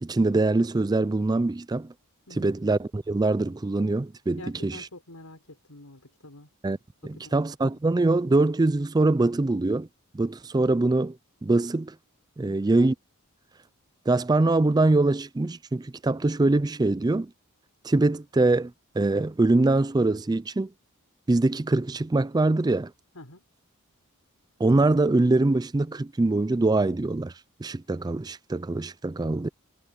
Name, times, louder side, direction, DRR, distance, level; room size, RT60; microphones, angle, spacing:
voice 1, 0.0-1.9 2.4-4.9 6.6-6.8 7.0-9.9 10.1-11.2 11.4-11.9 12.4-12.9 14.1-17.3 17.8-20.7 21.3-22.9 24.6-27.3 27.6-29.5, right 2 dB, 20° right, 0.4 m, -23 dB
voice 2, 4.4-6.5 7.0-7.5 12.4-12.6 23.1-23.4, left 2 dB, 90° left, 5.0 m, -47 dB
head